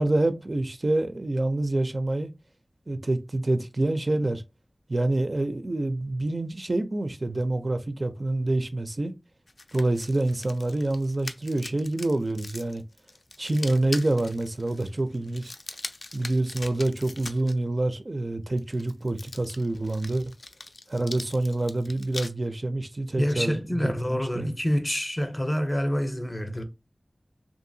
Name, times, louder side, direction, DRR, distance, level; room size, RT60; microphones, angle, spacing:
voice 1, 0.0-2.3 2.9-4.4 4.9-9.1 9.7-12.8 13.4-15.5 16.1-20.3 20.9-24.5, right 2 dB, 50° right, 0.4 m, -27 dB
sound 1, 9.5-17.5 18.6-22.3, left 2 dB, 75° left, 0.3 m, -41 dB
voice 2, 23.2-26.6, equal, 25° left, 0.6 m, -27 dB
2.7 x 2.5 x 2.6 m
wide cardioid pair, 50°, 0 cm